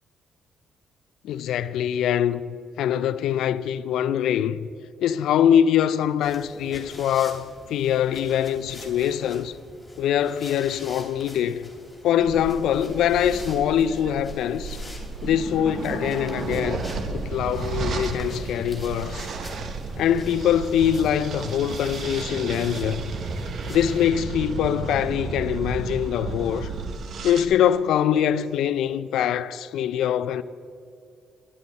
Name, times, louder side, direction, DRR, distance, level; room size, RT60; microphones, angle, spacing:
voice 1, 1.2-2.4 2.8-4.7 5.0-9.5 10.0-11.6 12.0-14.8 15.2-19.3 20.0-23.0 23.7-26.7 27.2-30.4, left 9 dB, 80° left, 0.3 m, -23 dB
sound 1, 6.2-24.1, left 1 dB, 5° left, 3.1 m, -46 dB
sound 2, 12.2-27.5, right 4 dB, 60° right, 0.9 m, -33 dB
12.0 x 11.0 x 4.0 m
cardioid pair, 90°, 0 cm